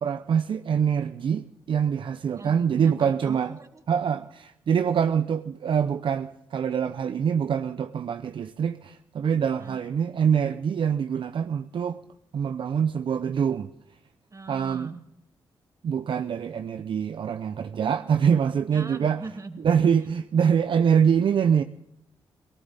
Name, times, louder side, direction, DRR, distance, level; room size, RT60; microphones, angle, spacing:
voice 1, 0.0-3.6 3.9-12.0 12.3-13.7 14.5-15.0 15.8-19.3 19.6-21.6, right 7 dB, 65° right, 0.6 m, -24 dB
voice 2, 2.4-3.8 4.1-4.3 9.6-9.8 14.3-15.0 18.7-19.6, right 3 dB, 35° right, 2.3 m, -41 dB
19.0 x 18.0 x 4.1 m
cardioid pair, 55°, 9 cm